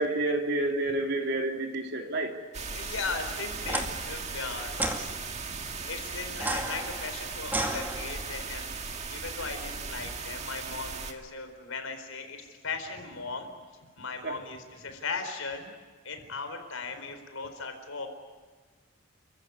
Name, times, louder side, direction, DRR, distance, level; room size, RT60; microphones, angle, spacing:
voice 1, 0.0-2.4 14.2-14.4, right 2 dB, 55° right, 2 dB, 3.2 m, -29 dB
sound 1, 2.5-11.1, right 4 dB, 35° right, 1.9 m, -37 dB
voice 2, 2.7-8.8 9.1-13.5 14.0-15.7 16.0-18.1, left 4 dB, 90° left, 7 dB, 4.4 m, -38 dB
sound 2, 3.6-3.9 4.7-5.0 6.3-8.4, right 1 dB, 10° right, 2.3 m, -32 dB
30.0 x 15.5 x 9.7 m, 1.4 s
head